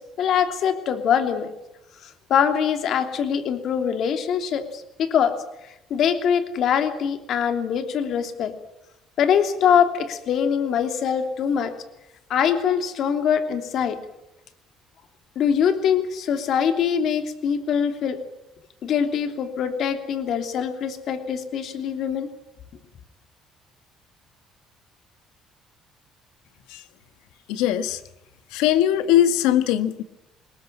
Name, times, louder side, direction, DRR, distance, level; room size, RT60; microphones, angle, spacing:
voice 1, 0.0-1.5 2.0-5.4 5.9-8.5 9.2-11.7 12.3-14.0 15.3-18.2 18.8-22.3, left 8 dB, 60° left, 7 dB, 3.0 m, -23 dB
voice 2, 27.5-28.0 28.5-30.0, left 11 dB, 85° left, 11 dB, 1.4 m, -20 dB
21.5 x 19.5 x 8.9 m, 0.85 s
supercardioid pair, 90°, 0 cm